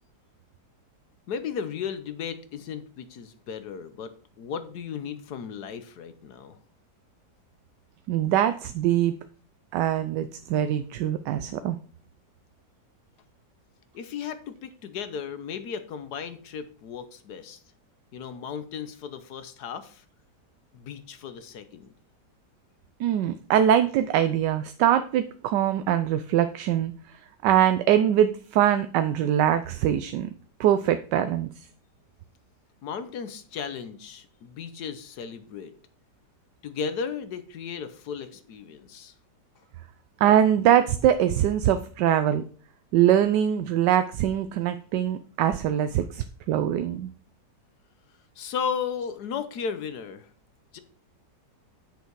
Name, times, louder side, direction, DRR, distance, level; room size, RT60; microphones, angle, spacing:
voice 1, 1.3-4.1 4.4-6.6 13.9-17.6 18.1-20.0 20.7-21.9 32.8-35.7 36.6-39.1 48.4-50.3 50.7-50.8, left 6 dB, 70° left, 11 dB, 1.4 m, -35 dB
voice 2, 8.1-9.1 9.7-11.8 23.0-26.9 27.4-30.3 30.6-31.5 40.2-42.4 42.9-47.1, right 10 dB, 85° right, 10 dB, 1.2 m, -23 dB
8.1 x 6.8 x 4.6 m, 0.42 s
omnidirectional pair, 1.8 m